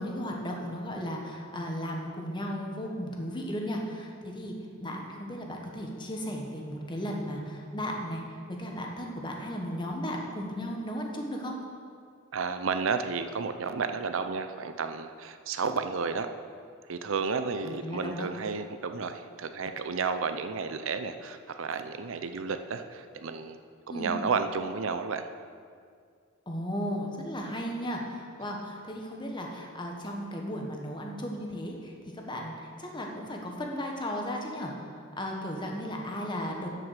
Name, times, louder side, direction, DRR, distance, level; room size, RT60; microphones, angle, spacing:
voice 1, 0.0-4.5 4.8-8.2 8.5-11.6 17.7-18.3 23.9-24.2 26.5-31.9 32.2-36.7, equal, 20° left, 0 dB, 1.3 m, -35 dB
voice 2, 12.3-16.3 16.9-23.6 23.9-25.3, right 5 dB, 70° right, 9 dB, 0.5 m, -32 dB
9.5 x 7.6 x 6.6 m, 2.2 s
head